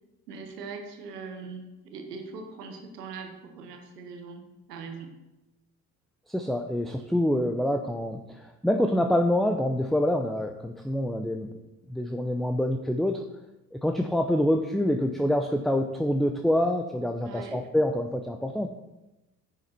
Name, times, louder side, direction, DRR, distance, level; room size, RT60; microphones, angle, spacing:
voice 1, 0.3-5.1 17.2-17.6, right 4 dB, 85° right, 4 dB, 1.3 m, -41 dB
voice 2, 6.3-11.5 11.9-13.2 13.7-18.7, left 1 dB, ahead, 5 dB, 0.6 m, -26 dB
9.9 x 7.2 x 4.3 m, 1.0 s
hypercardioid pair, 50°, 46 cm